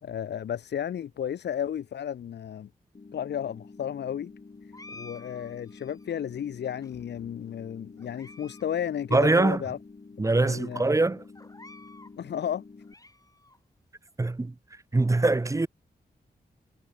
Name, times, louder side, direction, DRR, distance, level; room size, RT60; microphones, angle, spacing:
voice 1, 0.0-2.7 3.1-4.3 4.9-9.8 10.3-10.8 12.2-12.6, left 9 dB, 85° left, 0.9 m, -33 dB
sound 1, 2.9-12.9, left 4 dB, 40° left, 3.0 m, -49 dB
sound 2, 4.7-6.1 6.8-7.5 8.0-8.7 9.0-9.1 9.8-9.9 10.2-10.4 11.3-12.2 12.6-13.6, left 2 dB, 20° left, 5.0 m, -51 dB
voice 2, 9.1-9.6 10.2-11.2 14.2-14.5 14.9-15.7, right 2 dB, 20° right, 0.6 m, -23 dB
cardioid pair, 55°, 17 cm